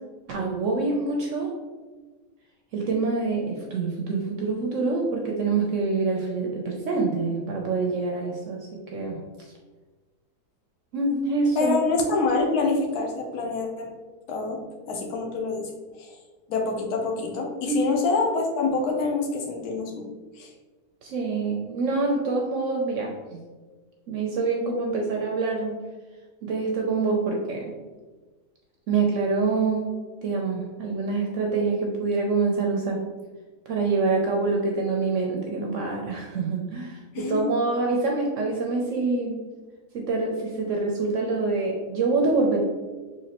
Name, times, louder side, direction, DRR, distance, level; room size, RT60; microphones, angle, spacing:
voice 1, 0.3-1.5 2.7-9.2 10.9-11.8 17.7-17.8 21.0-23.4 24.1-25.8 26.4-27.7 28.9-29.9 30.2-33.0 33.7-39.4 39.9-42.6, right 3 dB, 65° right, 0 dB, 0.8 m, -26 dB
voice 2, 11.6-13.9 14.3-15.7 16.0-16.2 16.5-20.0 20.4-20.5 37.1-37.5, left 3 dB, 75° left, 2 dB, 1.2 m, -26 dB
3.9 x 3.0 x 2.9 m, 1.3 s
omnidirectional pair, 1.7 m